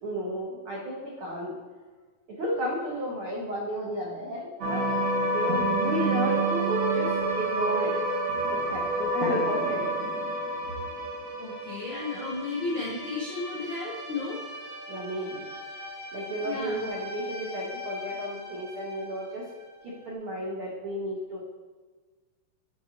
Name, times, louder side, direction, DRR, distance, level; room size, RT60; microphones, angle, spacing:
voice 1, 0.0-1.5 2.4-4.8 5.3-7.9 8.5-10.1 14.9-15.4 16.1-19.4 19.8-21.4, equal, 80° right, -4 dB, 1.1 m, -33 dB
sound 1, 4.6-19.1, right 1 dB, 55° right, 1.7 m, -30 dB
voice 2, 11.4-14.4 16.4-16.9, left 3 dB, 90° left, -6 dB, 1.1 m, -33 dB
8.3 x 2.9 x 5.0 m, 1.4 s
omnidirectional pair, 3.9 m